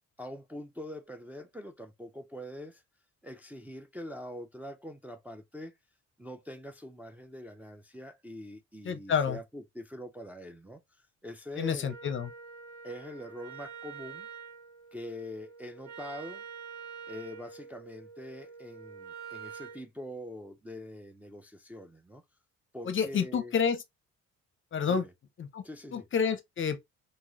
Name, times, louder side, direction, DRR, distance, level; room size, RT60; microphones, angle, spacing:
voice 1, 0.2-2.8 3.2-5.7 6.2-12.1 12.8-14.3 14.9-16.4 17.1-22.2 22.7-23.5 24.9-25.1 25.6-26.0, left 1 dB, 5° right, 0.4 m, -44 dB
voice 2, 8.8-9.4 11.6-12.3 22.9-23.8 24.7-25.0 25.4-25.6 25.9-26.8, left 6 dB, 40° left, 0.6 m, -29 dB
Wind instrument woodwind instrument, 11.9-19.8, right 6 dB, 65° right, 0.9 m, -46 dB
3.0 x 2.8 x 2.4 m
cardioid pair, 90°, 30 cm